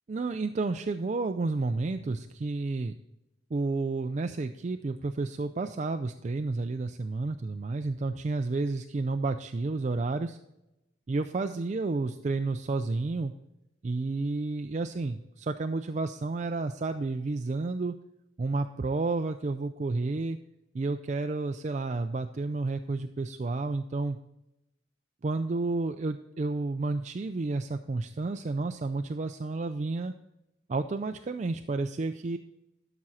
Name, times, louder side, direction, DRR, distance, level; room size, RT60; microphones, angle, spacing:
voice 1, 0.1-3.0 3.5-10.4 11.1-13.3 13.8-18.0 18.4-20.4 20.7-24.2 25.2-30.1 30.7-32.4, right 3 dB, 35° right, 8 dB, 0.3 m, -31 dB
12.5 x 6.0 x 4.2 m, 0.90 s
head